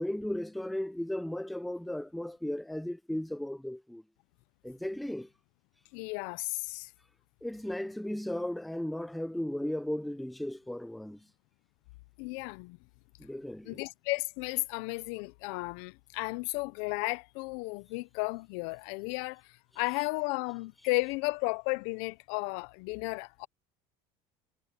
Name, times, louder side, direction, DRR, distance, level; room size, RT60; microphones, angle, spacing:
voice 1, 0.0-4.0 4.6-5.3 7.4-11.2 13.2-13.8, left 1 dB, ahead, 0.4 m, -35 dB
voice 2, 5.9-6.9 12.2-12.8 13.6-19.4 19.8-23.5, left 25 dB, 80° left, 0.6 m, -34 dB
cardioid pair, 150°, 16 cm